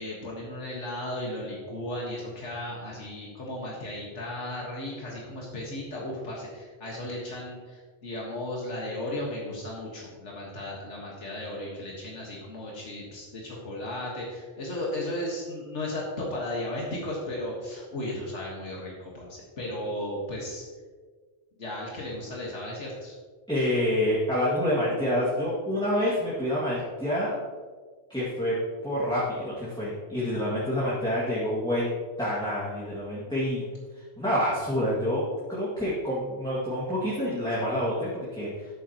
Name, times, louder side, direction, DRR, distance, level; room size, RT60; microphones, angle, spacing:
voice 1, 0.0-20.6 21.6-23.1, left 1 dB, 85° left, -4 dB, 2.0 m, -35 dB
voice 2, 23.5-27.4 28.1-28.6 28.8-31.9 32.2-33.6 33.9-35.2 35.5-38.7, left 1 dB, 5° left, -9 dB, 2.1 m, -27 dB
12.5 x 9.2 x 3.0 m, 1.5 s
omnidirectional pair, 1.2 m